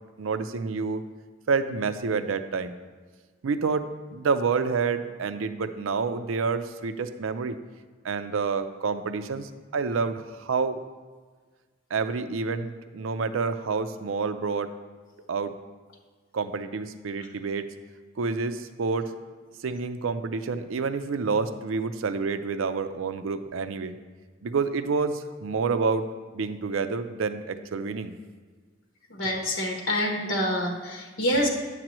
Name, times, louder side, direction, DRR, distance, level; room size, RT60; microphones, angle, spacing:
voice 1, 0.2-1.0 1.5-2.8 3.4-7.6 8.0-10.8 11.9-14.7 15.3-15.5 16.3-17.7 18.2-19.2 19.6-24.0 24.4-26.1 26.3-28.2, right 4 dB, 80° right, 10 dB, 0.5 m, -28 dB
voice 2, 29.1-31.5, equal, 75° left, 0 dB, 1.1 m, -26 dB
9.8 x 7.5 x 3.0 m, 1.5 s
head